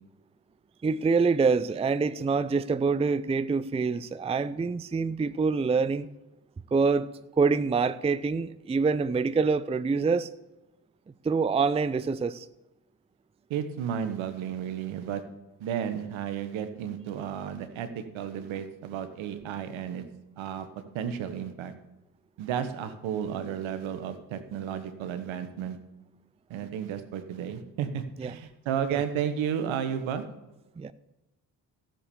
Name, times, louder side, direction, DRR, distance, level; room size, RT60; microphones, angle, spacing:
voice 1, 0.8-6.1 6.7-7.1 7.4-10.3 11.2-12.5 28.2-28.3 28.9-29.0 30.8-30.9, right 4 dB, 15° right, 0.5 m, -25 dB
voice 2, 13.5-15.2 15.6-20.0 20.4-20.7 20.9-21.7 22.4-25.8 26.5-30.2, right 8 dB, 70° right, 1.4 m, -33 dB
14.0 x 7.4 x 7.0 m
hypercardioid pair, 45°, 49 cm